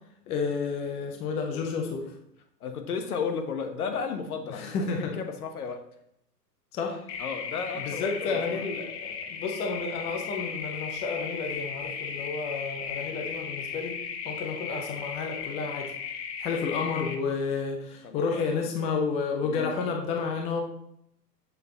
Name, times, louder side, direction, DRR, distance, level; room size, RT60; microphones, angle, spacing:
voice 1, 0.3-2.1 4.5-5.1 6.7-7.1 7.7-14.0 14.2-15.9 16.4-20.6, left 5 dB, 15° left, 2 dB, 0.5 m, -31 dB
voice 2, 2.6-4.9 5.2-5.9 7.2-8.6 18.0-18.4 19.4-19.8, left 5 dB, 60° left, 6 dB, 1.3 m, -34 dB
sound 1, 7.1-17.2, left 6 dB, 40° left, 1.0 m, -36 dB
7.3 x 6.7 x 3.7 m, 0.75 s
figure-of-eight pair, 105°, 50 cm